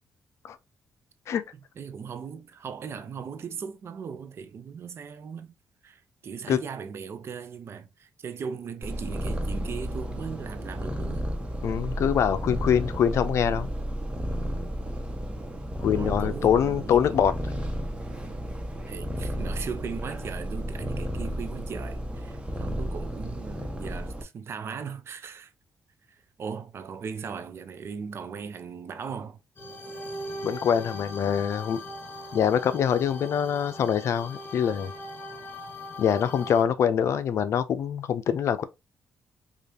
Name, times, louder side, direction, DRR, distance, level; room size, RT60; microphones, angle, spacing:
voice 1, 1.8-5.5 5.8-11.3 15.9-17.2 18.9-25.5 26.1-29.4, right 6 dB, 55° right, 0.7 m, -38 dB
Purr, 8.8-24.2, equal, 20° right, 1.1 m, -32 dB
voice 2, 11.6-13.7 15.8-17.3 30.4-31.8 32.3-34.9 36.0-38.6, left 8 dB, 65° left, 0.5 m, -24 dB
sound 1, 29.6-36.6, left 1 dB, 45° left, 1.4 m, -40 dB
5.0 x 2.4 x 2.8 m
cardioid pair, 70°, 5 cm